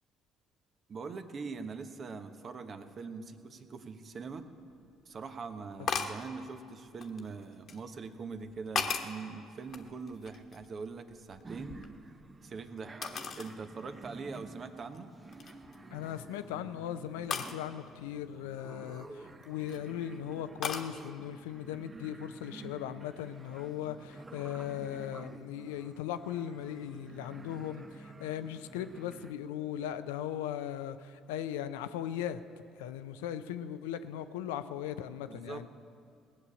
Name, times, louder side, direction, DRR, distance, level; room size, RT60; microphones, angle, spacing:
voice 1, 0.9-4.5 5.0-11.8 12.4-13.0 13.4-15.1 35.3-35.7, right 4 dB, 45° right, 8 dB, 1.1 m, -42 dB
sound 1, 4.4-4.5 5.9-6.2 7.0-7.8 8.4-9.2 9.7-10.8 11.1-12.4 13.0-13.6 14.0-14.1 14.8-15.0 15.3-15.8 17.3-17.6 19.3-19.8 20.6-20.9, left 6 dB, 55° left, 1.2 m, -36 dB
sound 2, 11.4-29.3, right 3 dB, 25° right, 0.8 m, -50 dB
voice 2, 15.9-35.7, left 10 dB, 85° left, 11 dB, 0.5 m, -38 dB
18.5 x 6.8 x 8.7 m, 2.4 s
hypercardioid pair, 60°, 0 cm